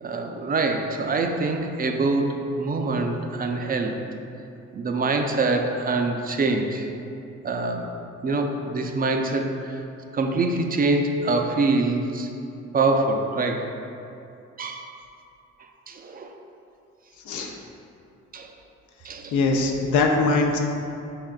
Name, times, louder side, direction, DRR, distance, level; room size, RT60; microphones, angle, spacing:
voice 1, 0.0-4.0 4.7-6.9 7.4-7.9 8.2-9.8 10.1-12.3 12.7-13.7 14.6-14.9 15.9-16.3 17.4-17.5 18.3-18.5 19.0-19.4, right 3 dB, 30° right, 4 dB, 0.3 m, -25 dB
voice 2, 19.3-20.6, left 3 dB, 80° left, 1 dB, 0.6 m, -21 dB
5.2 x 3.6 x 2.3 m, 2.7 s
cardioid pair, 90°, 30 cm